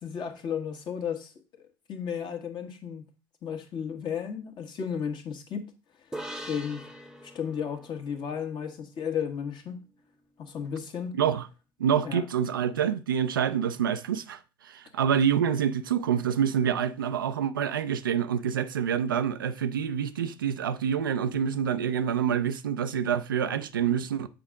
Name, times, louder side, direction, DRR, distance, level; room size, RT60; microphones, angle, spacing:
voice 1, 0.0-1.3 1.9-3.0 3.4-5.6 6.3-6.8 7.2-9.8 10.4-11.2 12.0-12.2, left 7 dB, 45° left, 1.4 m, -33 dB
sound 1, 6.1-9.6, right 1 dB, 5° right, 0.9 m, -43 dB
voice 2, 11.1-11.5 11.8-24.3, right 8 dB, 80° right, 0.4 m, -27 dB
7.5 x 5.0 x 3.7 m
figure-of-eight pair, 60°, 11 cm